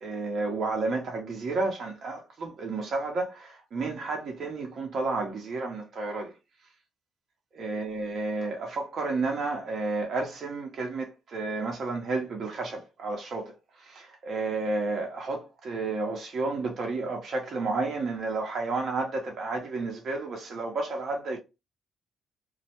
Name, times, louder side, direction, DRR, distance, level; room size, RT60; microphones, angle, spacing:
voice 1, 0.0-6.3 7.5-13.5 13.9-21.4, right 3 dB, 60° right, 0.7 m, -31 dB
2.3 x 2.1 x 2.8 m
cardioid pair, 90°, 0 cm